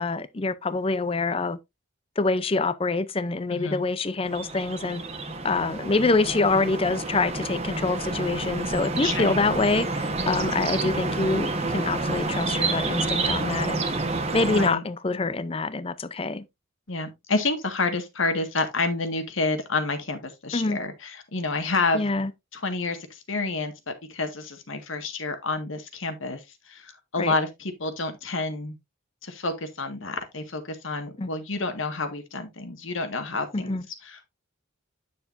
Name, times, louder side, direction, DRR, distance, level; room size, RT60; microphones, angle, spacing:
voice 1, 0.0-1.6 2.2-5.0 5.4-13.8 14.3-16.4 20.5-20.8 21.9-22.3 27.2-27.3 31.2-31.3 33.5-33.9, left 3 dB, 25° left, 0.5 m, -25 dB
voice 2, 3.5-3.8 9.0-9.4 14.5-14.8 16.9-22.0 22.5-28.8 29.2-33.8 34.0-34.3, left 3 dB, 75° left, 1.8 m, -29 dB
sound 1, 4.2-14.7, right 3 dB, 30° right, 1.2 m, -29 dB
9.5 x 6.8 x 2.6 m
head